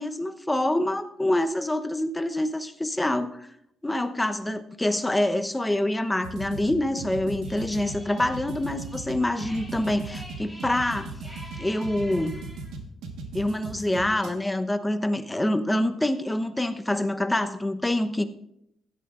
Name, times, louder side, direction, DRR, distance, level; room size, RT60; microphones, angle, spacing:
voice 1, 0.0-3.5 3.8-11.2 11.6-12.4 13.3-18.2, left 1 dB, 10° left, 9 dB, 0.9 m, -26 dB
sound 1, 6.2-14.3, right 4 dB, 90° right, 1.4 m, -37 dB
sound 2, 7.4-12.8, equal, 10° right, 3.8 m, -47 dB
16.0 x 11.0 x 2.5 m, 0.78 s
cardioid pair, 90°, 0 cm